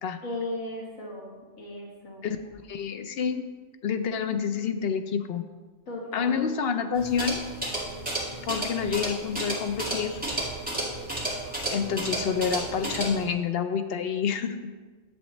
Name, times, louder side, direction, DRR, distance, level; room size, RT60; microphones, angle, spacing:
voice 1, 0.2-2.3 5.9-6.3, left 1 dB, 80° left, -3 dB, 1.9 m, -36 dB
voice 2, 2.2-3.5 3.8-5.4 6.1-7.4 8.4-10.2 11.7-14.7, left 6 dB, 60° left, 8 dB, 0.7 m, -28 dB
sound 1, 6.9-13.2, right 1 dB, 5° right, 1.9 m, -32 dB
10.5 x 7.7 x 3.1 m, 1.4 s
omnidirectional pair, 1.4 m